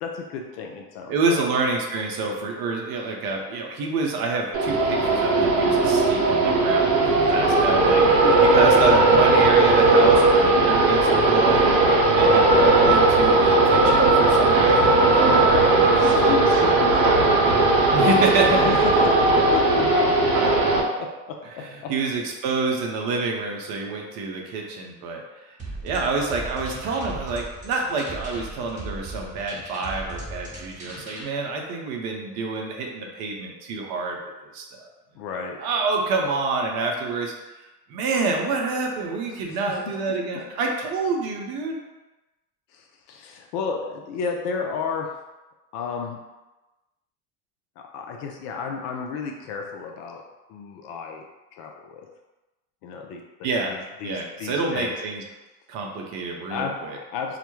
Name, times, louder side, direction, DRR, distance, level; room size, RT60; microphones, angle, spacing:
voice 1, 0.0-1.4 7.0-7.3 8.2-8.8 11.6-12.4 15.6-17.3 18.4-18.9 19.3-19.6 20.4-21.9 35.1-35.6 42.7-45.1 45.7-46.2 47.8-50.2 50.5-51.2 51.6-52.1 52.8-54.9 56.5-56.8 57.1-57.4, left 5 dB, 50° left, 2 dB, 0.4 m, -32 dB
voice 2, 1.1-8.1 8.4-11.7 12.1-16.8 17.9-18.6 21.6-25.5 25.8-34.2 34.4-34.9 35.6-41.8 53.4-53.8 54.0-55.2 55.7-57.0, right 3 dB, 50° right, 0 dB, 0.6 m, -28 dB
sound 1, 4.5-20.8, right 2 dB, 80° right, 0.7 m, -17 dB
sound 2, 25.6-31.2, right 2 dB, 15° right, 0.9 m, -37 dB
2.2 x 2.1 x 2.9 m, 1.1 s
hypercardioid pair, 90°, 47 cm